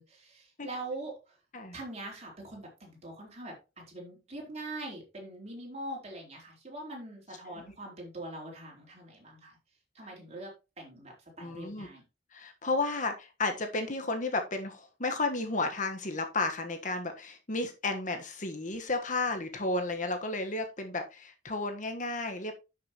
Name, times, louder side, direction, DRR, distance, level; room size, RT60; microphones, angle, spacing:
voice 1, 0.0-1.4 1.7-3.5 3.9-9.6 9.9-12.0, right 2 dB, 40° right, -1 dB, 4.2 m, -43 dB
voice 2, 11.4-11.9 12.3-22.5, left 3 dB, 45° left, 6 dB, 1.4 m, -33 dB
11.0 x 6.7 x 3.1 m, 0.28 s
head